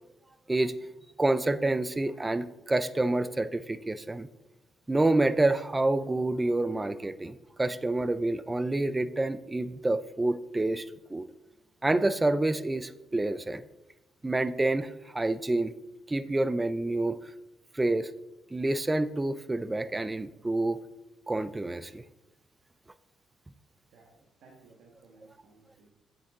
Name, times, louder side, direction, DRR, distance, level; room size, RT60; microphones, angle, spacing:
voice 1, 1.2-4.3 4.9-11.3 11.8-13.6 14.2-15.7 16.1-17.2 17.7-18.1 18.5-20.8 21.3-22.0, right 2 dB, 15° right, 14 dB, 0.5 m, -28 dB
voice 2, 23.9-25.9, right 3 dB, 80° right, -1 dB, 1.5 m, -58 dB
8.6 x 8.0 x 3.7 m, 1.0 s
cardioid pair, 90°, 0 cm